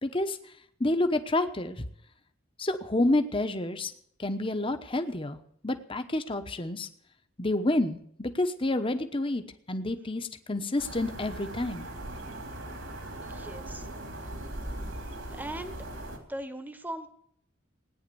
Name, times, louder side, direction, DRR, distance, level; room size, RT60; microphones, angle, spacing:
voice 1, 0.0-0.4 0.8-1.9 2.6-3.9 4.2-5.4 5.6-6.9 7.4-11.9, left 2 dB, 25° left, 8 dB, 1.0 m, -29 dB
sound 1, 10.8-16.2, right 1 dB, 70° right, 3.5 m, -39 dB
voice 2, 13.2-13.9 15.3-15.8 16.3-17.1, right 1 dB, 10° right, 9 dB, 1.2 m, -39 dB
17.5 x 10.0 x 7.0 m, 0.68 s
head